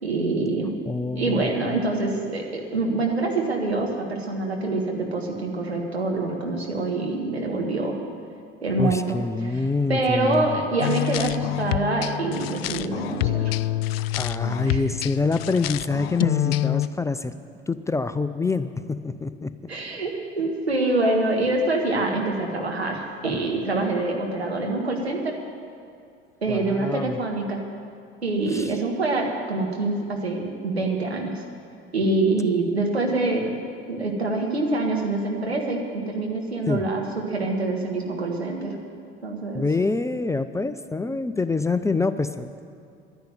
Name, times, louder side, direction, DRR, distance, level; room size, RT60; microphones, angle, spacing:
voice 1, 0.0-0.8 1.1-8.0 8.6-9.6 9.9-13.5 14.7-14.8 19.7-25.4 26.4-27.6 28.2-31.4 31.9-33.6 33.9-38.8 39.2-39.7, right 2 dB, 90° right, 0 dB, 1.8 m, -25 dB
voice 2, 0.9-1.5 8.8-10.6 14.2-17.3 17.7-19.7 26.5-27.2 28.5-28.7 36.7-36.8 39.5-42.6, left 3 dB, 10° left, 11 dB, 0.5 m, -26 dB
sound 1, 10.8-16.9, left 15 dB, 70° left, 0.4 m, -27 dB
11.5 x 10.5 x 9.2 m, 2.5 s
figure-of-eight pair, 65°, 31 cm